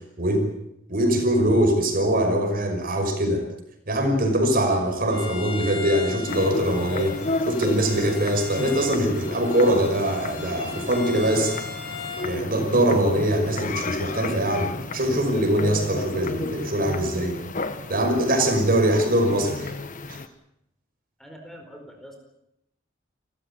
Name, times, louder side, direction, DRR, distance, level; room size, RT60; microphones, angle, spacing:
voice 1, 0.9-3.4 3.9-7.2 7.4-11.6 12.2-17.4 17.9-19.7 20.1-20.2, right 1 dB, 50° right, 5 dB, 5.5 m, -22 dB
Bowed string instrument, 5.1-12.3, left 4 dB, 60° left, 5.4 m, -38 dB
sound 1, 6.3-20.3, left 2 dB, 45° left, 1.3 m, -33 dB
voice 2, 21.2-22.2, equal, ahead, 3 dB, 4.6 m, -43 dB
29.0 x 15.0 x 8.7 m, 0.83 s
head